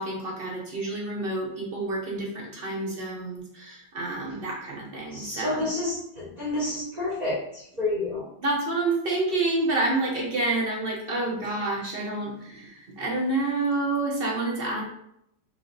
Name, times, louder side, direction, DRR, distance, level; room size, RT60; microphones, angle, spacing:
voice 1, 0.0-5.7 8.4-14.8, right 2 dB, 50° right, -2 dB, 0.7 m, -28 dB
voice 2, 5.1-8.3, left 2 dB, 30° right, -5 dB, 1.0 m, -29 dB
3.4 x 3.2 x 3.8 m, 0.76 s
omnidirectional pair, 1.8 m